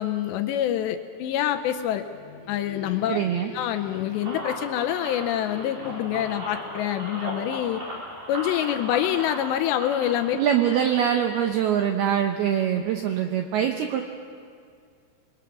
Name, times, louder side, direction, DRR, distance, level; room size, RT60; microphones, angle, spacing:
voice 1, 0.0-2.1 2.5-3.2 3.5-7.8 8.3-10.4, left 11 dB, 80° left, 7 dB, 2.6 m, -26 dB
sound 1, 2.0-8.4, left 6 dB, 60° left, 3.0 m, -45 dB
voice 2, 3.1-3.5 10.4-14.0, right 9 dB, 85° right, 4 dB, 2.2 m, -23 dB
sound 2, 4.1-11.0, equal, 35° right, 5.7 m, -37 dB
sound 3, 4.8-5.4 5.9-6.1 6.9-7.9 8.3-9.4, right 1 dB, 15° right, 7.3 m, -49 dB
28.0 x 22.5 x 6.1 m, 2.3 s
omnidirectional pair, 5.8 m